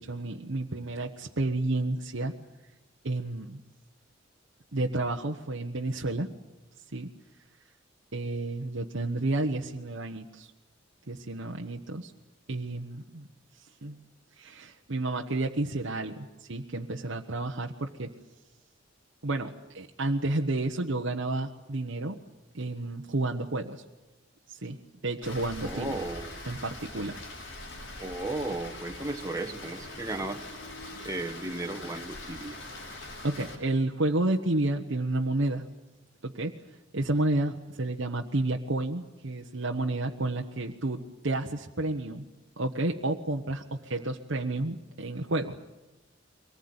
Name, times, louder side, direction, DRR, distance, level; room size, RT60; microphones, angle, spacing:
voice 1, 0.0-2.3 3.0-3.6 4.7-6.3 6.9-7.1 8.1-10.5 11.1-12.1 12.5-13.3 13.8-14.0 14.4-18.1 19.2-22.2 22.5-23.8 24.5-24.8 25.0-26.0 26.4-27.2 33.2-35.6 36.2-36.5 36.9-42.2 42.6-45.5, right 2 dB, 80° right, 1 dB, 1.2 m, -31 dB
Rain, 25.2-33.5, left 2 dB, 85° left, 5.6 m, -42 dB
voice 2, 25.6-26.4 28.0-30.5 30.9-32.6, right 2 dB, 20° right, 4 dB, 1.4 m, -35 dB
24.0 x 19.0 x 9.7 m, 1.1 s
head